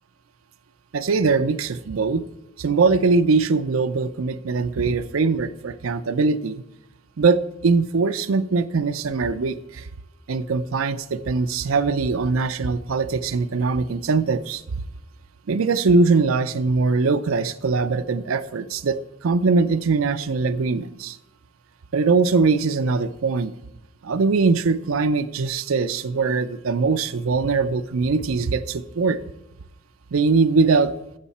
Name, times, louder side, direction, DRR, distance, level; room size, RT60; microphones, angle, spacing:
voice 1, 0.9-2.2 2.6-6.6 7.2-9.9 10.3-14.6 15.5-21.2 21.9-23.5 24.0-29.2 30.1-30.9, right 4 dB, 85° right, 10 dB, 0.5 m, -21 dB
12.5 x 7.3 x 4.2 m, 0.90 s
head